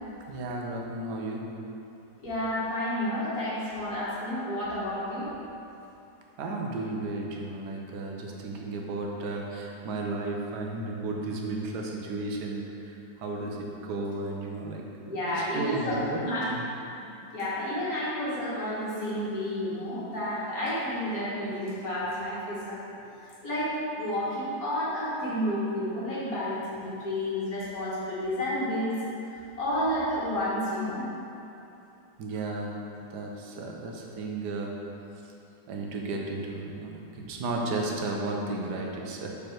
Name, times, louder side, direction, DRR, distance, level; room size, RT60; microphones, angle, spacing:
voice 1, 0.3-1.5 6.4-16.6 23.0-23.1 32.2-32.7 33.1-34.7 35.7-39.5, right 2 dB, 70° right, 0 dB, 1.4 m, -34 dB
voice 2, 2.2-5.3 13.4-13.5 15.1-16.5 17.3-22.8 23.4-29.0 29.6-31.1, left 1 dB, 50° left, -9 dB, 2.1 m, -30 dB
6.8 x 5.2 x 4.5 m, 2.8 s
omnidirectional pair, 2.0 m